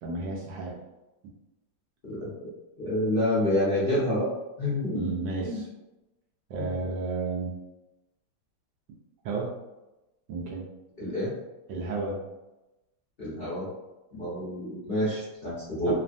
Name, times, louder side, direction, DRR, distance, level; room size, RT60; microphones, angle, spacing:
voice 1, 0.0-0.8 5.0-5.7 6.5-7.5 9.2-9.6 10.3-10.6 11.7-12.2 15.9-16.0, right 3 dB, 75° right, -3 dB, 1.1 m, -32 dB
voice 2, 2.8-4.3 4.6-5.0 5.4-5.6 6.6-6.7 11.0-11.3 13.2-13.7 14.1-15.9, left 1 dB, 45° left, -11 dB, 0.8 m, -28 dB
3.2 x 2.1 x 2.5 m, 1.0 s
omnidirectional pair, 2.0 m